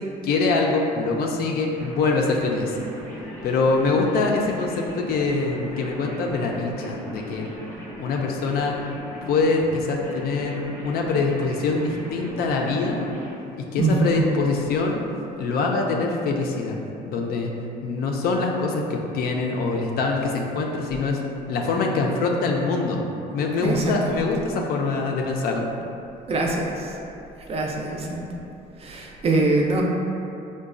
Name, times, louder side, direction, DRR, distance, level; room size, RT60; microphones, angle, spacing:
voice 1, 0.2-2.7 3.4-7.5 8.0-8.8 9.2-13.1 13.6-15.0 15.4-16.8 17.1-17.5 17.8-21.2 21.5-23.0 23.3-25.7, left 3 dB, 65° left, 1 dB, 0.4 m, -24 dB
sound 1, 1.7-13.3, equal, 10° left, 0.7 m, -39 dB
voice 2, 13.8-14.2 23.6-24.1 26.3-27.0 27.4-28.3 28.8-29.8, right 2 dB, 35° right, 0 dB, 0.4 m, -23 dB
3.9 x 2.1 x 2.4 m, 2.7 s
cardioid pair, 110°, 17 cm